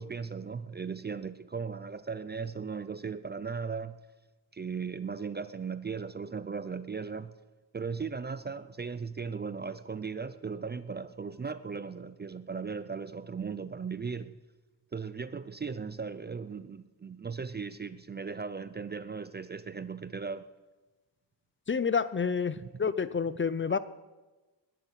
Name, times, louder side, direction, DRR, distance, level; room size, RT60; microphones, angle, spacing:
voice 1, 0.0-4.0 4.5-7.3 7.7-14.3 14.9-20.4 22.6-22.7 23.7-23.8, right 5 dB, 25° right, 14 dB, 0.5 m, -37 dB
voice 2, 21.7-23.8, left 6 dB, 25° left, 15 dB, 0.5 m, -29 dB
20.0 x 11.0 x 5.8 m, 1.2 s
cardioid pair, 115°, 44 cm